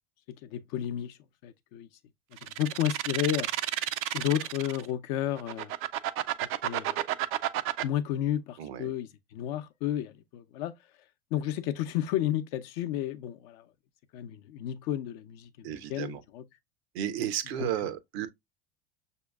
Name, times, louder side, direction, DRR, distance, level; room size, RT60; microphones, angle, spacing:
voice 1, 0.3-1.2 1.4-1.9 2.4-3.5 4.1-5.7 6.6-7.0 7.8-10.7 11.3-13.7 14.1-16.4 17.6-17.7, left 12 dB, 60° left, 0.7 m, -32 dB
sound 1, 2.4-4.9 5.4-7.8, right 14 dB, 45° right, 0.4 m, -31 dB
voice 2, 8.6-8.9 15.6-16.2 16.9-18.3, right 10 dB, 70° right, 0.7 m, -33 dB
6.1 x 2.9 x 2.2 m
hypercardioid pair, 85°, 32 cm